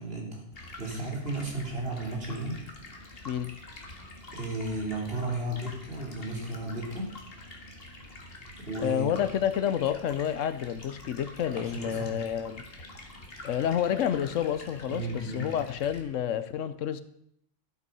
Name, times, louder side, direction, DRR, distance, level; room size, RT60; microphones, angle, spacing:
voice 1, 0.0-2.6 4.3-7.1 8.6-9.2 11.6-12.2 14.9-15.5, right 2 dB, 50° right, 3.7 m, -34 dB
Stream, 0.5-16.0, left 2 dB, 50° left, 2.1 m, -47 dB
voice 2, 8.8-12.6 13.4-17.0, left 9 dB, 85° left, 1.1 m, -29 dB
12.5 x 8.3 x 5.4 m
omnidirectional pair, 1.3 m